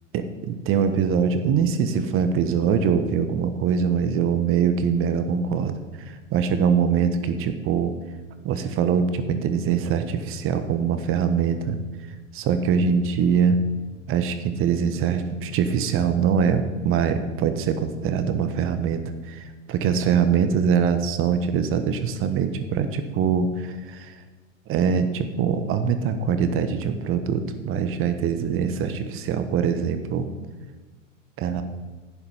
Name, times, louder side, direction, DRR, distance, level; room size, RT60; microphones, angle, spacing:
voice 1, 0.1-7.9 8.4-11.8 12.3-13.6 14.1-24.1 24.7-30.3 31.4-31.6, right 7 dB, 35° right, 9 dB, 1.1 m, -23 dB
11.0 x 9.8 x 5.6 m, 1.3 s
figure-of-eight pair, 90°, 39 cm